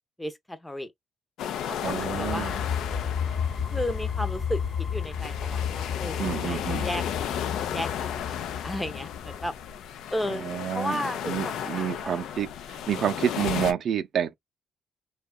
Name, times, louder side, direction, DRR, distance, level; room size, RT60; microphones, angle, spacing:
voice 1, 0.2-0.9 1.6-2.6 3.7-7.0 7.6-8.4 8.6-9.5 10.1-10.4 10.7-12.2, left 1 dB, 10° left, 0.6 m, -34 dB
sound 1, 1.4-13.7, left 9 dB, 80° left, 0.4 m, -34 dB
voice 2, 1.8-2.5 6.2-6.9 10.2-14.3, right 9 dB, 65° right, 0.5 m, -29 dB
sound 2, 2.0-9.6, left 7 dB, 35° left, 1.0 m, -32 dB
2.8 x 2.2 x 2.2 m
cardioid pair, 90°, 0 cm